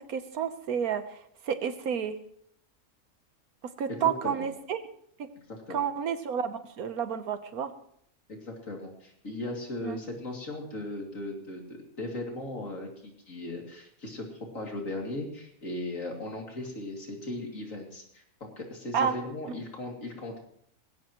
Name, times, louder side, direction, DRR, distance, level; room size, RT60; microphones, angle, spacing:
voice 1, 0.1-2.2 3.8-4.8 5.2-5.3 5.7-7.7 9.8-10.0 18.9-19.2, right 7 dB, 85° right, 10 dB, 1.5 m, -30 dB
voice 2, 3.9-4.5 5.5-5.8 8.3-20.4, left 1 dB, 65° left, 0 dB, 3.3 m, -38 dB
20.0 x 16.5 x 3.1 m, 0.67 s
omnidirectional pair, 1.5 m